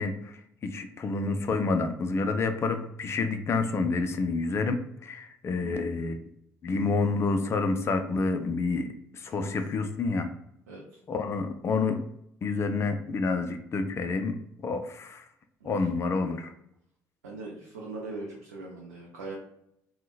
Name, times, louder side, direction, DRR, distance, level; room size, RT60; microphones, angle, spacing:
voice 1, 0.0-6.2 6.6-10.3 11.1-12.0 12.4-14.4 14.6-15.2 15.6-16.5, left 3 dB, 30° left, 7 dB, 0.3 m, -28 dB
voice 2, 5.6-5.9 9.3-9.5 10.7-11.0 15.6-15.7 17.2-19.4, right 3 dB, 80° right, -3 dB, 0.5 m, -40 dB
3.7 x 2.0 x 2.3 m, 0.75 s
figure-of-eight pair, 50°, 9 cm